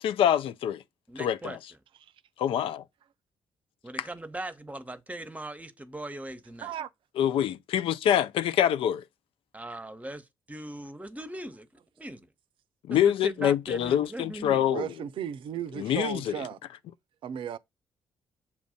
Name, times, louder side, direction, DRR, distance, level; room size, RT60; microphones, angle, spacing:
voice 1, 0.0-0.8 1.2-1.6 2.4-2.8 7.2-9.0 12.9-14.9 15.8-16.3, left 10 dB, 70° left, 0.5 m, -25 dB
voice 2, 1.1-1.6 3.8-6.7 9.5-11.7 12.0-12.3 12.9-14.7, right 1 dB, 15° right, 1.0 m, -40 dB
voice 3, 14.6-16.6 17.2-17.6, right 10 dB, 65° right, 0.5 m, -35 dB
7.3 x 2.6 x 5.0 m
hypercardioid pair, 45°, 10 cm